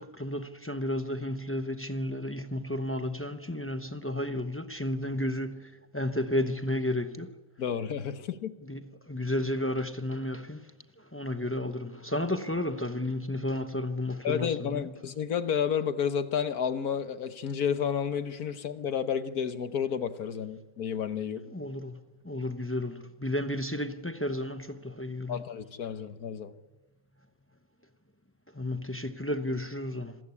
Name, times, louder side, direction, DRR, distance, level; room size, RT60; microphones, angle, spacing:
voice 1, 0.0-7.3 8.6-10.7 11.0-14.9 21.5-25.4 28.5-30.2, left 1 dB, 15° left, 0.4 m, -32 dB
voice 2, 7.6-8.5 14.2-21.4 25.3-26.5, left 7 dB, 60° left, 1.4 m, -31 dB
27.0 x 16.0 x 9.8 m
omnidirectional pair, 2.0 m